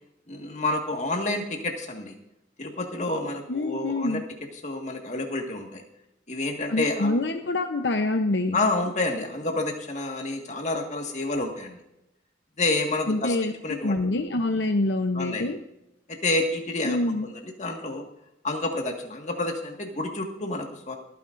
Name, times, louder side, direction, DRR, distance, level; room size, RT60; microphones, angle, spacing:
voice 1, 0.3-2.2 2.6-4.2 4.6-5.8 6.3-7.2 8.5-11.8 12.6-14.0 15.1-15.5 16.1-18.0 18.4-21.0, left 2 dB, 40° left, 3 dB, 1.8 m, -29 dB
voice 2, 3.5-4.2 6.7-8.6 13.1-13.5 13.8-15.6 16.9-17.3, left 2 dB, 65° left, 5 dB, 0.8 m, -26 dB
27.0 x 9.5 x 2.6 m, 0.89 s
head